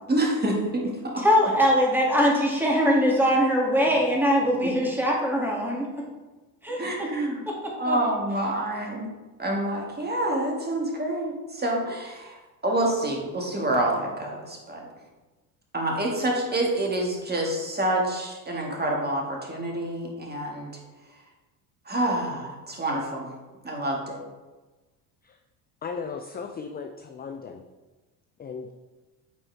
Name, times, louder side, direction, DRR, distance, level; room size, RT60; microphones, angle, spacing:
voice 1, 0.0-1.2 4.6-4.7 6.8-7.4 7.8-9.1 9.4-14.9 15.7-20.7 21.9-23.3 23.6-24.2, right 1 dB, 20° right, -1 dB, 1.9 m, -27 dB
voice 2, 1.2-6.0 6.6-6.8 7.9-8.0, equal, 5° right, -3 dB, 2.3 m, -22 dB
voice 3, 25.8-27.6 28.4-28.7, left 5 dB, 20° left, 4 dB, 0.4 m, -36 dB
8.5 x 4.4 x 3.4 m, 1.2 s
hypercardioid pair, 75°, 50 cm